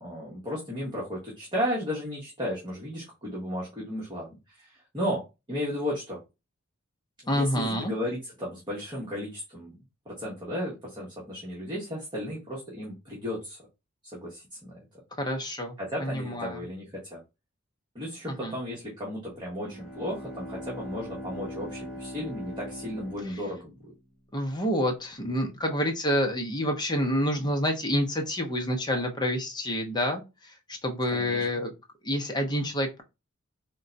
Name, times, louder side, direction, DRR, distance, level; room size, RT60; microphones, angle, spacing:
voice 1, 0.0-6.2 7.2-9.7 10.1-13.6 14.1-14.8 15.8-17.2 17.9-23.9 31.1-31.4, equal, 20° right, -4 dB, 1.2 m, -34 dB
voice 2, 7.3-7.9 15.2-16.6 18.3-18.6 24.3-31.7 32.0-33.0, equal, 20° left, 3 dB, 0.8 m, -28 dB
Bowed string instrument, 19.6-24.2, equal, ahead, 1.6 m, -41 dB
3.7 x 2.2 x 3.9 m, 0.26 s
head